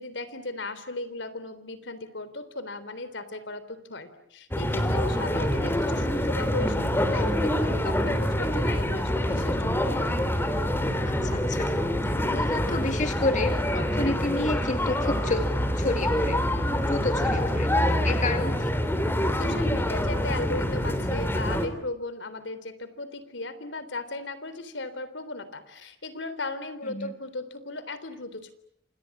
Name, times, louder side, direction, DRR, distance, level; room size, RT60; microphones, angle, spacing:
voice 1, 0.0-9.7 19.3-28.5, left 2 dB, 75° left, 13 dB, 3.6 m, -36 dB
sound 1, 4.5-21.7, left 1 dB, 15° left, 3.2 m, -26 dB
voice 2, 11.0-11.7 12.3-15.5 15.7-16.4 16.7-18.8 26.9-27.1, left 2 dB, 40° left, 6 dB, 2.2 m, -30 dB
28.0 x 28.0 x 7.4 m, 0.73 s
head